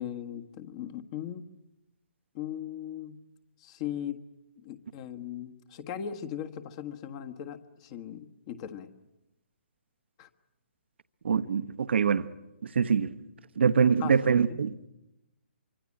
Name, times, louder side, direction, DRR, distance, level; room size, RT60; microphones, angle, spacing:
voice 1, 0.0-1.5 2.3-3.3 3.6-4.2 4.6-8.9 10.2-10.3 14.0-14.2 14.5-14.6, left 10 dB, 35° left, 1.5 m, -38 dB
voice 2, 11.2-12.3 12.6-13.1 13.6-14.9, right 6 dB, 70° right, 1.0 m, -24 dB
26.0 x 24.5 x 8.7 m
hypercardioid pair, 140°, 6 cm